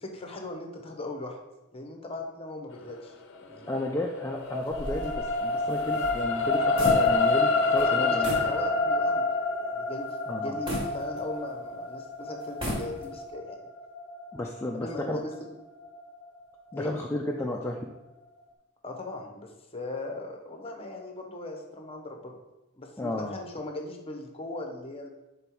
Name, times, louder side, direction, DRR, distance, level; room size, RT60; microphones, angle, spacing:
voice 1, 0.0-1.4 1.7-3.7 7.7-9.3 9.6-10.1 10.4-13.6 14.7-15.6 16.7-17.0 18.8-22.4 22.8-25.1, left 2 dB, 30° left, 3 dB, 0.8 m, -39 dB
sound 1, 3.7-16.2 16.7-16.9, left 3 dB, 60° left, 0.6 m, -28 dB
voice 2, 3.7-8.3 10.3-10.6 14.3-15.2 16.7-17.8 23.0-23.4, left 1 dB, 10° left, 0 dB, 0.4 m, -33 dB
sound 2, 4.7-7.5 7.7-7.9 8.2-8.5 9.0-9.1 10.7-11.7 12.4-13.3, equal, 25° right, 1.7 m, -35 dB
5.3 x 3.9 x 4.5 m, 1.0 s
head